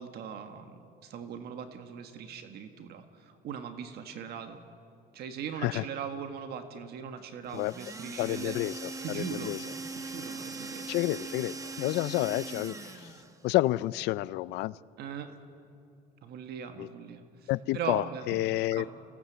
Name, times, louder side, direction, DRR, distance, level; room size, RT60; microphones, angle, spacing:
voice 1, 0.0-4.6 5.1-8.6 9.0-9.6 10.0-10.9 15.0-15.3 16.2-18.2 18.7-18.9, right 7 dB, 70° right, 7 dB, 1.5 m, -40 dB
sound 1, 7.5-13.4, right 3 dB, 20° right, 1.4 m, -40 dB
voice 2, 8.2-9.6 10.9-13.1 13.4-14.8 16.8-16.9 17.5-18.9, left 17 dB, 90° left, 20 dB, 0.5 m, -30 dB
25.0 x 17.5 x 8.0 m, 2.6 s
cardioid pair, 110°, 17 cm